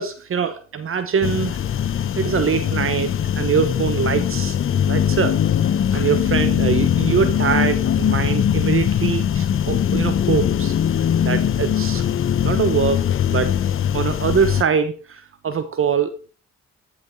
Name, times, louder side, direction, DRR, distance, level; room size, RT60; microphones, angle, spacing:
voice 1, 0.0-1.6 2.2-4.6 4.9-5.4 5.6-10.7 11.2-12.0 12.4-13.5 13.9-16.1, right 7 dB, 45° right, 10 dB, 1.0 m, -23 dB
sound 1, 1.2-14.6, left 9 dB, 45° left, 0.7 m, -21 dB
13.0 x 5.7 x 4.4 m, 0.38 s
cardioid pair, 90°, 30 cm